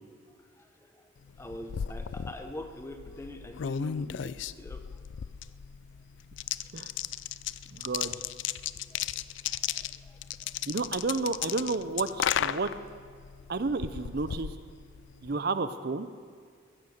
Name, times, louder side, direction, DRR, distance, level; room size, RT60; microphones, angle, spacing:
sound 1, 1.3-15.3, left 9 dB, 65° left, 0.3 m, -35 dB
voice 1, 1.4-4.8 8.9-9.0 9.8-9.9, left 1 dB, 15° left, 6 dB, 0.9 m, -43 dB
voice 2, 7.7-8.2 10.7-12.7 13.5-14.5 15.2-16.1, right 3 dB, 50° right, 12 dB, 0.6 m, -31 dB
15.5 x 14.5 x 6.5 m, 2.1 s
head